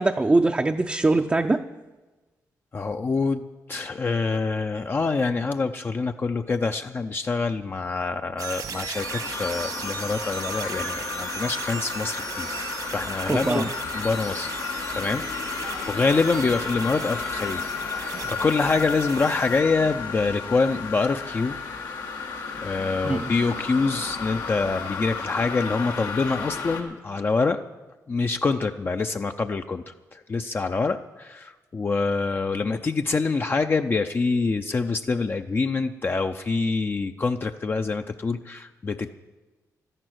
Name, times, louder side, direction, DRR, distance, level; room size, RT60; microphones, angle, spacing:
voice 1, 0.0-1.6 13.3-13.7 23.0-23.3, right 2 dB, 20° right, 4 dB, 0.5 m, -22 dB
voice 2, 2.7-3.4 3.7-12.5 12.9-14.6 14.9-15.2 15.5-17.6 18.0-21.6 22.6-27.6 28.1-29.8 30.1-39.1, left 4 dB, 35° left, 6 dB, 0.5 m, -25 dB
sound 1, 8.4-19.6, right 6 dB, 75° right, 1.7 m, -37 dB
sound 2, 8.9-26.8, left 5 dB, 90° left, 1.8 m, -33 dB
13.0 x 11.0 x 7.8 m, 1.2 s
cardioid pair, 100°, 6 cm